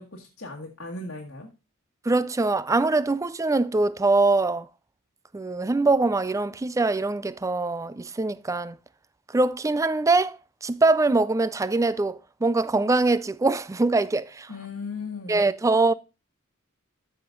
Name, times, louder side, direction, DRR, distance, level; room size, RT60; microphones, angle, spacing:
voice 1, 0.0-1.5 14.5-15.4, left 3 dB, 60° left, 1.7 m, -37 dB
voice 2, 2.1-4.7 5.3-8.8 9.3-14.5 15.3-15.9, right 3 dB, 15° right, 0.4 m, -23 dB
13.5 x 5.1 x 3.8 m
head